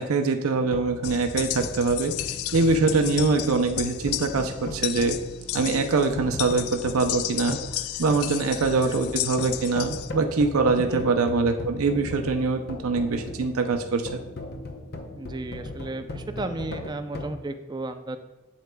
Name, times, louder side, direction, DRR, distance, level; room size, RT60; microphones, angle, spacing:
voice 1, 0.0-2.1 2.5-5.2 5.5-7.6 8.0-14.2, right 3 dB, 75° right, 6 dB, 0.5 m, -23 dB
circular hand drum half volume, 0.5-17.3, left 2 dB, 50° left, 0.7 m, -38 dB
sound 1, 1.0-10.1, left 13 dB, 75° left, 0.3 m, -33 dB
voice 2, 15.1-18.2, right 2 dB, 20° right, 8 dB, 0.4 m, -34 dB
8.0 x 7.9 x 2.2 m, 1.1 s
head